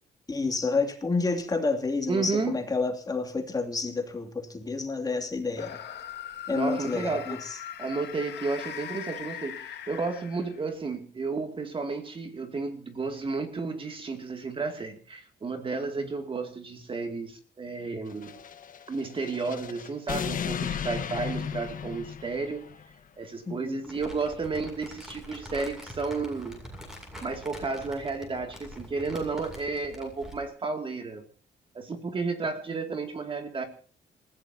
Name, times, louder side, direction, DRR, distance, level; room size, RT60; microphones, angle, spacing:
voice 1, 0.3-5.8 6.5-7.6 16.0-16.1 23.5-23.9, left 3 dB, 20° left, 2.8 m, -29 dB
voice 2, 2.1-2.6 6.5-7.4 7.8-18.3 18.9-22.7 23.2-26.6 27.2-31.2 31.7-33.6, right 4 dB, 30° right, 2.5 m, -32 dB
sound 1, 5.5-10.7, left 10 dB, 70° left, 2.1 m, -40 dB
sound 2, 18.1-22.9, left 7 dB, 45° left, 1.4 m, -35 dB
Crumpling crinkling, 23.8-30.5, equal, 5° right, 7.5 m, -45 dB
29.0 x 15.5 x 2.9 m
cardioid pair, 170°, 18 cm